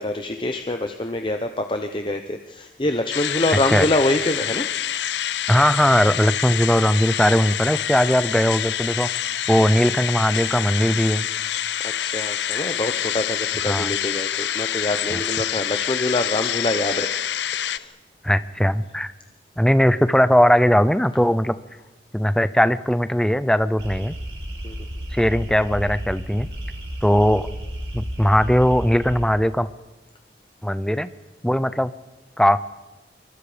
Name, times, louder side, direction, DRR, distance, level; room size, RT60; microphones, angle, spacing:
voice 1, 0.0-4.7 12.0-17.2 17.5-17.9 24.6-24.7, left 1 dB, 30° left, 6 dB, 0.9 m, -25 dB
sound 1, 3.1-17.8, left 10 dB, 85° left, 0.6 m, -27 dB
voice 2, 3.5-3.9 5.5-9.1 9.5-11.3 13.7-13.9 15.1-15.2 18.2-19.1 19.6-21.5 22.1-24.2 25.1-26.5 27.0-27.5 27.9-29.7 30.6-31.1 31.4-31.9 32.4-32.6, equal, 5° left, 13 dB, 0.6 m, -19 dB
sound 2, 23.8-29.2, equal, 85° right, 5.0 m, -32 dB
27.0 x 23.5 x 5.1 m, 1.1 s
head